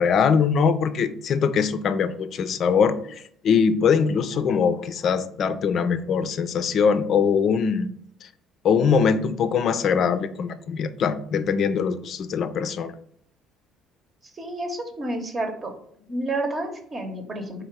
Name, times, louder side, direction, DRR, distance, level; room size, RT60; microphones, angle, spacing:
voice 1, 0.0-7.9 8.2-8.3 8.6-12.9, left 6 dB, 55° left, 12 dB, 0.4 m, -22 dB
voice 2, 14.4-15.7 16.1-17.6, right 1 dB, 35° right, 4 dB, 0.9 m, -30 dB
3.7 x 2.7 x 4.5 m, 0.65 s
supercardioid pair, 75°, 0 cm